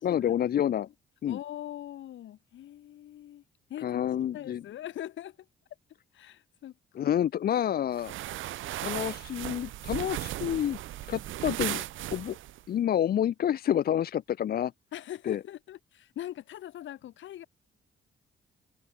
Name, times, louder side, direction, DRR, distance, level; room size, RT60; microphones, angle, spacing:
voice 1, 0.0-0.9 1.2-1.4 3.8-4.6 6.9-8.2 8.8-10.8 11.1-11.8 12.1-12.4 12.7-14.7 15.2-15.4, left 10 dB, 50° left, 0.6 m, -28 dB
voice 2, 1.3-3.4 3.7-4.0 4.3-5.4 6.1-7.2 14.9-17.4, left 12 dB, 75° left, 2.0 m, -42 dB
sound 1, 8.0-12.6, right 14 dB, 80° right, 0.9 m, -36 dB
cardioid pair, 90°, 20 cm